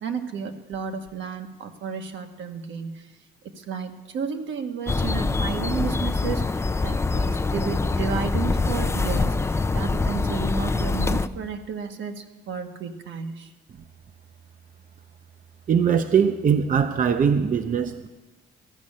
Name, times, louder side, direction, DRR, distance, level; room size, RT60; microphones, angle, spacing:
voice 1, 0.0-3.1 3.6-13.5, right 6 dB, 70° right, 5 dB, 1.2 m, -32 dB
sound 1, 4.9-11.3, left 3 dB, 15° left, 0.3 m, -24 dB
voice 2, 15.7-18.1, right 7 dB, 40° right, 8 dB, 0.6 m, -21 dB
14.5 x 5.3 x 8.6 m, 1.2 s
cardioid pair, 90°, 20 cm